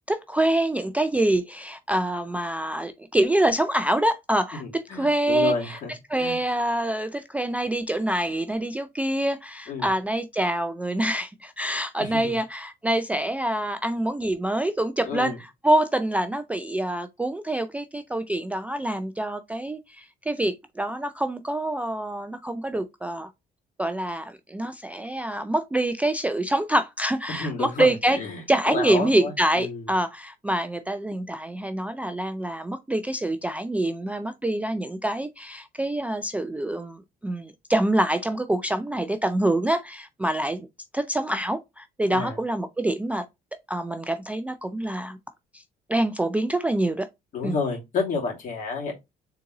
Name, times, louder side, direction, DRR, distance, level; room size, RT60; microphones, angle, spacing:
voice 1, 0.1-5.8 6.1-23.3 23.8-28.2 28.5-40.7 40.9-43.2 43.7-45.2 45.5-45.6 45.9-47.1 47.4-47.5, right 1 dB, 10° right, 0.3 m, -26 dB
voice 2, 4.6-5.9 6.2-6.4 9.7-9.9 12.0-12.4 15.1-15.4 27.3-28.4 28.7-29.8 42.1-42.4 47.3-48.9, left 4 dB, 50° left, 2.3 m, -30 dB
3.8 x 3.7 x 2.8 m
cardioid pair, 110°, 17 cm